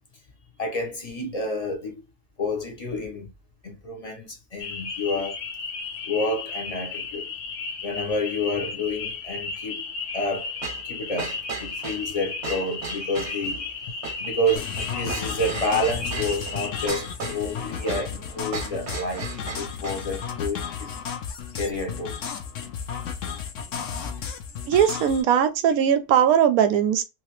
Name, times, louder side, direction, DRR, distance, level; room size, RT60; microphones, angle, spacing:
voice 1, 0.6-2.0 2.4-3.3 3.6-5.4 6.0-7.3 7.8-9.8 10.1-11.3 11.6-13.7 14.2-21.0 21.5-22.2, left 1 dB, 35° left, 0.7 m, -29 dB
sound 1, 4.6-16.9, left 4 dB, 85° left, 1.2 m, -34 dB
sound 2, 10.6-20.1, right 5 dB, 50° right, 1.1 m, -37 dB
sound 3, 14.6-25.2, left 7 dB, 65° left, 0.9 m, -33 dB
voice 2, 24.7-27.0, right 9 dB, 75° right, 1.0 m, -19 dB
3.1 x 2.9 x 3.0 m
omnidirectional pair, 1.6 m